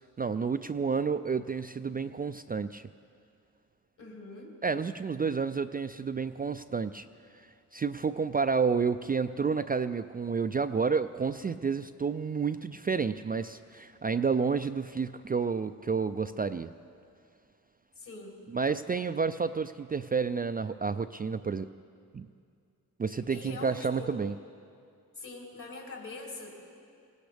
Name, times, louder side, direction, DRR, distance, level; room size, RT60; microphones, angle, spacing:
voice 1, 0.2-2.9 4.6-7.1 7.3-7.4 7.7-16.7 18.5-21.7 22.1-22.3 23.0-24.3, right 5 dB, 25° right, 10 dB, 0.3 m, -30 dB
voice 2, 4.0-4.6 18.0-18.4 23.1-24.2 25.2-26.5, left 3 dB, 60° left, -2 dB, 3.8 m, -43 dB
20.0 x 17.0 x 3.4 m, 2.3 s
cardioid pair, 60°, 36 cm